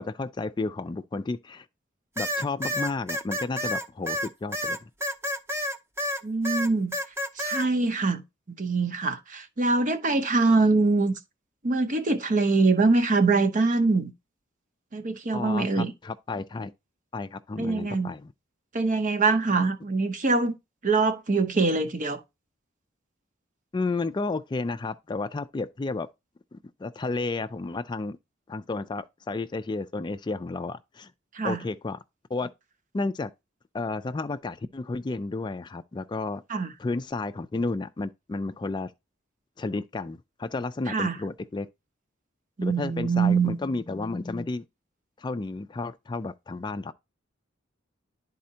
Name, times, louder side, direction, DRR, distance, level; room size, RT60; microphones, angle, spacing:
voice 1, 0.0-1.7 2.2-4.9 15.3-16.7 17.1-18.3 23.7-26.1 26.5-28.2 28.5-31.1 31.4-32.0 32.3-32.5 32.9-33.3 33.7-38.9 39.6-41.7 42.6-44.6 45.2-46.9, left 3 dB, 25° left, 0.3 m, -32 dB
sound 1, 2.2-6.2 6.4-7.7, equal, 15° right, 0.7 m, -29 dB
voice 2, 6.2-6.9 7.4-8.2 8.6-11.1 11.6-14.1 14.9-15.9 17.6-18.1 18.7-20.5 20.8-22.2 31.3-31.6 36.5-36.7 40.9-41.2 42.6-43.6, right 3 dB, 40° right, 0.8 m, -23 dB
11.5 x 4.3 x 2.8 m
head